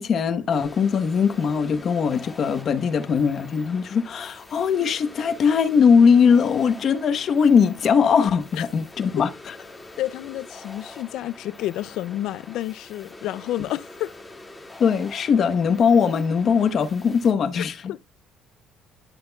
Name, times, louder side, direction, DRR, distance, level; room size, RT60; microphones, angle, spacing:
voice 1, 0.0-9.5 14.8-17.8, left 6 dB, 45° left, 1.0 m, -20 dB
sound 1, 0.5-17.3, left 2 dB, 15° left, 2.2 m, -44 dB
voice 2, 10.0-14.2 17.6-18.0, left 14 dB, 75° left, 0.4 m, -30 dB
11.0 x 7.5 x 2.3 m
cardioid pair, 130°, 0 cm